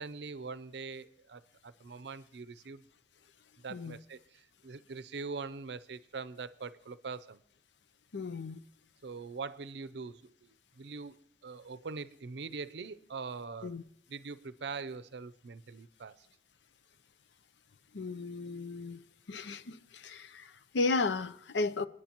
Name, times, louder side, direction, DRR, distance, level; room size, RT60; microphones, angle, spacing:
voice 1, 0.0-2.8 3.6-7.4 9.0-11.2 11.4-13.8 14.1-16.3, right 4 dB, 70° right, 0.6 m, -43 dB
voice 2, 8.1-8.6 13.6-13.8 17.9-19.0 19.3-21.9, left 3 dB, 80° left, 0.6 m, -34 dB
27.0 x 10.0 x 3.0 m
head